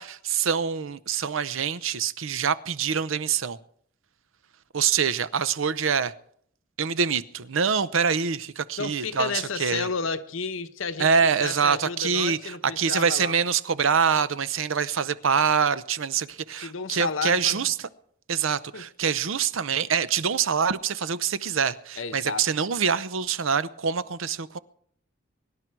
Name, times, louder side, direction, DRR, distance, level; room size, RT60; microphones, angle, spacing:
voice 1, 0.0-3.6 4.7-6.1 6.8-9.9 11.0-17.9 18.3-24.6, right 6 dB, 75° right, 0.7 m, -25 dB
voice 2, 8.8-13.3 16.6-17.6 18.7-18.8 22.0-22.4, left 4 dB, 75° left, 0.9 m, -32 dB
24.0 x 11.0 x 4.6 m
head